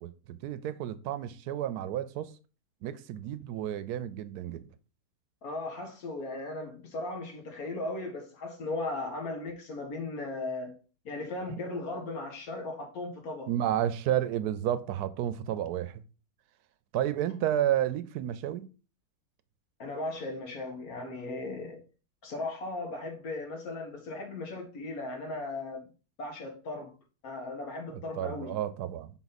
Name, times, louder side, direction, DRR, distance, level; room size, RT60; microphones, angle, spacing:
voice 1, 0.0-2.3 2.8-4.7 13.5-16.0 16.9-18.7 27.9-29.1, right 11 dB, 80° right, 1.1 m, -31 dB
voice 2, 5.4-10.8 11.1-13.5 19.8-21.8 22.2-25.9 26.2-26.9 27.2-28.5, left 2 dB, 65° left, 1.9 m, -37 dB
5.9 x 4.0 x 4.0 m
omnidirectional pair, 1.7 m